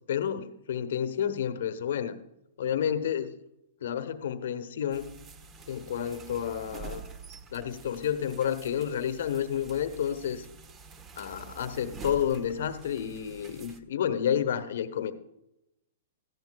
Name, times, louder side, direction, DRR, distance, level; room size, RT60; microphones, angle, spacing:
voice 1, 0.1-2.2 2.6-3.4 3.8-5.1 5.7-7.0 7.5-10.4 11.2-15.1, left 9 dB, 70° left, 11 dB, 1.1 m, -30 dB
sound 1, 4.9-13.8, right 5 dB, 25° right, 1.2 m, -47 dB
18.0 x 14.0 x 2.3 m, 0.89 s
hypercardioid pair, 120°, 0 cm